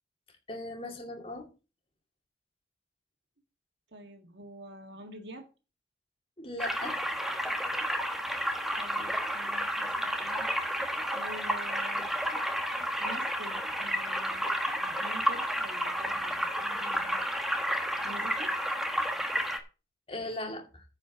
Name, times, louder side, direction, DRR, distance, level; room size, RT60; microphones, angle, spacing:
voice 1, 0.5-1.5 6.4-7.0 20.1-20.8, left 2 dB, 30° left, 2.4 m, -38 dB
voice 2, 3.9-5.5 8.7-10.5 11.1-12.1 13.0-14.4 14.8-17.3 18.0-18.5, right 1 dB, 70° right, 1.9 m, -47 dB
sound 1, 6.6-19.6, equal, ahead, 1.2 m, -31 dB
9.8 x 5.3 x 7.2 m
head